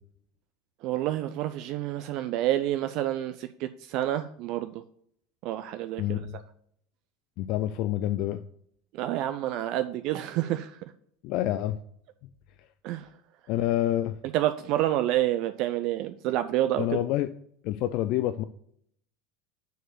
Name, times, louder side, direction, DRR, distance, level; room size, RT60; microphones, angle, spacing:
voice 1, 0.8-4.8 5.4-6.2 8.9-10.8 12.8-13.1 14.3-17.0, right 13 dB, 55° right, 9 dB, 0.4 m, -28 dB
voice 2, 6.0-6.4 7.4-8.4 11.2-11.8 13.5-14.2 16.8-17.3 17.6-18.4, left 13 dB, 55° left, 10 dB, 0.4 m, -27 dB
6.4 x 4.6 x 6.4 m, 0.67 s
hypercardioid pair, 75°, 0 cm